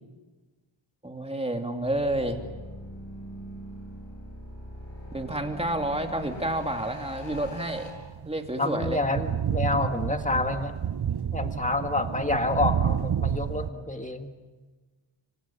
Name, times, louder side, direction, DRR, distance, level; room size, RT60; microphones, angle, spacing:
voice 1, 1.0-2.4 5.1-7.9 8.2-9.0, right 1 dB, 10° right, 4 dB, 2.7 m, -29 dB
sound 1, 1.8-7.9, equal, 60° left, 7.7 m, -42 dB
sound 2, 7.3-8.5 8.8-13.7, right 8 dB, 50° right, 0.8 m, -29 dB
voice 2, 8.6-10.8 11.3-14.3, left 2 dB, 15° left, 6 dB, 1.9 m, -28 dB
27.5 x 25.5 x 7.1 m, 1.3 s
wide cardioid pair, 105°, 50 cm